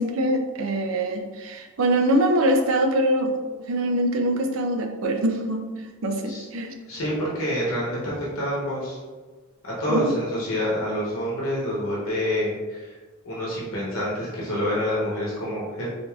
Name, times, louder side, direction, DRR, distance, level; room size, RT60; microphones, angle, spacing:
voice 1, 0.0-3.4 3.7-5.7 6.0-6.7 9.9-10.1, right 1 dB, 70° right, 5 dB, 0.5 m, -23 dB
voice 2, 6.9-9.0 9.6-13.0 13.2-15.9, equal, 75° left, -6 dB, 0.9 m, -27 dB
4.7 x 2.6 x 2.3 m, 1.4 s
head